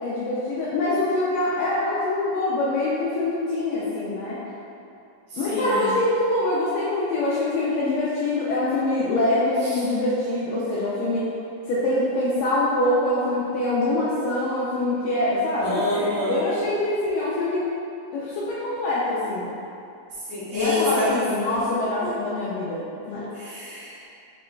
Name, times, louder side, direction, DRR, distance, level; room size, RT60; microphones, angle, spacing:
voice 1, 0.0-4.4 5.4-11.3 11.7-17.6 18.1-19.5 20.5-23.3, left 2 dB, 80° left, -8 dB, 1.5 m, -24 dB
voice 2, 5.3-5.9 9.6-9.8 15.6-16.5 20.3-21.2 22.0-22.1 23.3-24.1, left 1 dB, 80° right, -15 dB, 0.5 m, -27 dB
4.9 x 2.9 x 2.2 m, 2.7 s
omnidirectional pair, 3.4 m